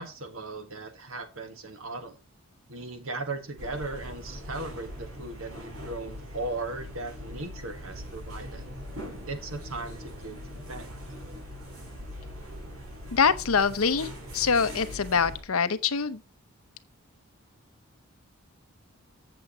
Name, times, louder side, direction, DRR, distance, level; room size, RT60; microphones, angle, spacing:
voice 1, 0.0-2.2 2.7-8.6 9.3-10.4 10.7-10.9, right 2 dB, 70° right, 1.8 m, -37 dB
sound 1, 3.6-15.4, equal, 85° right, 4.8 m, -41 dB
voice 2, 13.1-16.2, left 6 dB, 80° left, 0.8 m, -25 dB
7.9 x 7.7 x 4.2 m
head